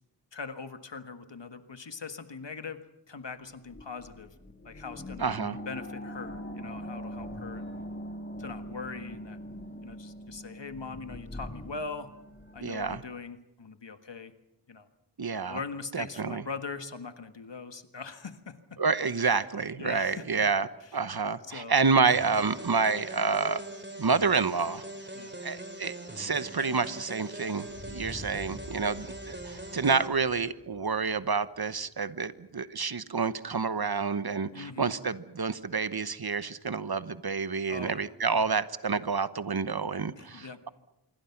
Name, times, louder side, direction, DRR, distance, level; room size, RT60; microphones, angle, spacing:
voice 1, 0.3-4.3 4.6-5.3 5.7-7.7 8.4-9.4 9.8-12.1 12.5-14.3 14.7-14.9 15.5-18.8 19.2-19.3 19.8-20.5 20.8-21.0 21.5-21.8 25.1-25.4 34.5-34.9 37.7-38.0 38.3-38.4 40.2-40.6, left 4 dB, 80° left, 9 dB, 1.7 m, -41 dB
sound 1, 3.5-13.1, equal, 25° left, 2.7 m, -42 dB
voice 2, 5.2-5.6 12.6-13.0 15.2-15.6 15.9-16.4 18.8-23.6 24.0-24.8 25.4-40.7, right 5 dB, 60° right, 14 dB, 1.1 m, -29 dB
sound 2, 22.1-30.1, right 1 dB, 25° right, 2.9 m, -42 dB
sound 3, 27.7-32.3, left 2 dB, 45° left, 4.2 m, -48 dB
25.5 x 24.0 x 5.9 m, 0.87 s
wide cardioid pair, 45°, 42 cm